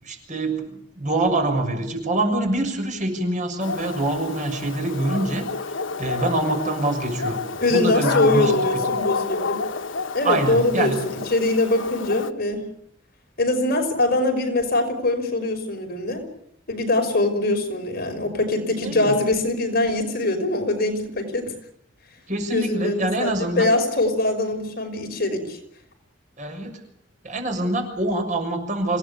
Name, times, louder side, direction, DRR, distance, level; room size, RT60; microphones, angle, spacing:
voice 1, 0.0-5.5 6.0-7.4 7.7-8.8 10.2-11.0 18.8-19.2 22.3-23.7 26.4-26.8 27.2-29.0, right 2 dB, 40° right, 5 dB, 6.6 m, -25 dB
Dog, 3.6-12.3, left 4 dB, 90° left, 1.2 m, -29 dB
voice 2, 7.6-9.6 10.1-12.7 13.4-16.3 16.7-21.5 22.5-25.6, left 2 dB, 55° left, 5 dB, 5.7 m, -23 dB
27.0 x 18.0 x 8.5 m, 0.71 s
head